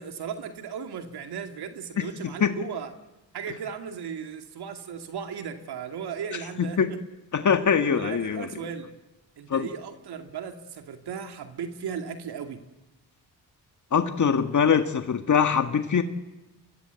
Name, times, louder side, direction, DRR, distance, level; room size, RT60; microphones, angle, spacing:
voice 1, 0.0-2.9 3.3-7.0 7.9-8.9 9.4-12.6, right 7 dB, 70° right, 5 dB, 2.4 m, -36 dB
voice 2, 6.6-6.9 7.3-8.5 9.5-9.7 13.9-16.0, left 7 dB, 45° left, 7 dB, 1.8 m, -23 dB
29.5 x 24.0 x 8.2 m, 1.0 s
cardioid pair, 75°, 40 cm